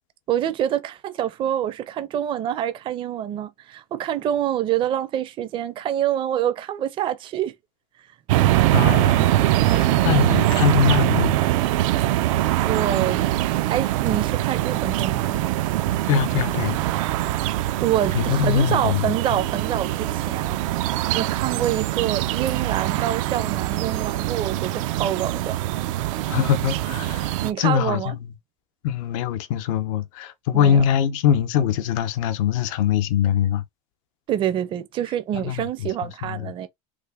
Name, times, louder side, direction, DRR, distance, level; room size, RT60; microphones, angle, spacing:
voice 1, 0.3-7.5 9.6-10.0 12.6-13.2 13.7-15.6 17.8-20.6 21.1-25.6 27.4-28.1 30.5-30.8 34.3-36.7, right 10 dB, 30° right, 0.5 m, -26 dB
sound 1, 8.3-27.5, right 14 dB, 85° right, 0.4 m, -23 dB
voice 2, 8.7-11.4 16.1-16.8 18.1-19.4 26.3-28.3 28.8-33.6 35.3-36.5, left 9 dB, 80° left, 0.6 m, -23 dB
3.2 x 2.1 x 3.4 m
supercardioid pair, 140°, 16 cm